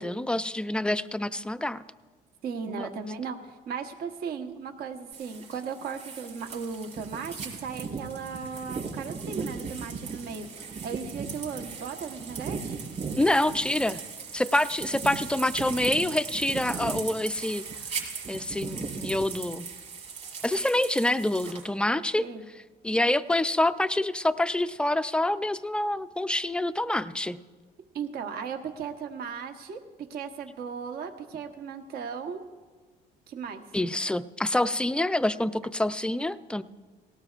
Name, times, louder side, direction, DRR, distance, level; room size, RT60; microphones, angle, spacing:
voice 1, 0.0-1.8 2.6-2.9 13.2-14.0 14.3-17.6 18.3-19.7 20.4-22.3 22.8-27.4 33.7-36.6, left 1 dB, 5° left, 13 dB, 0.4 m, -26 dB
voice 2, 2.4-3.4 3.7-10.5 10.8-12.8 22.2-22.4 27.9-29.8 30.1-32.4 33.3-33.6, right 6 dB, 65° right, 5 dB, 1.2 m, -36 dB
sound 1, 5.1-21.7, right 5 dB, 45° right, 4.2 m, -37 dB
18.5 x 18.0 x 2.5 m, 1.4 s
cardioid pair, 110°, 17 cm